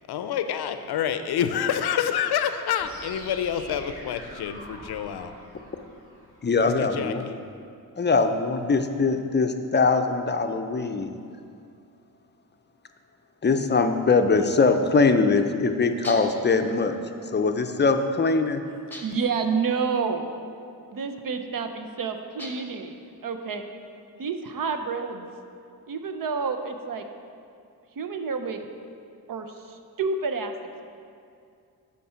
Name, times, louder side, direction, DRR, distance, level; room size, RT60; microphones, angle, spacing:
voice 1, 0.1-5.3 6.6-7.4, left 9 dB, 85° left, 9 dB, 0.6 m, -28 dB
sound 1, 2.8-6.8, equal, 35° right, 1.8 m, -45 dB
voice 2, 6.4-7.2 8.0-11.1 13.4-17.0 17.3-18.6, left 4 dB, 30° left, 7 dB, 0.5 m, -22 dB
sound 2, 16.0-16.5 18.9-19.4 22.4-22.8, left 1 dB, 5° left, 1.0 m, -40 dB
voice 3, 19.0-20.3 20.9-23.6 24.2-25.3 25.9-27.0 28.0-28.7 29.3-30.5, right 5 dB, 60° right, 7 dB, 0.7 m, -29 dB
8.4 x 4.6 x 5.6 m, 2.4 s
cardioid pair, 90°, 38 cm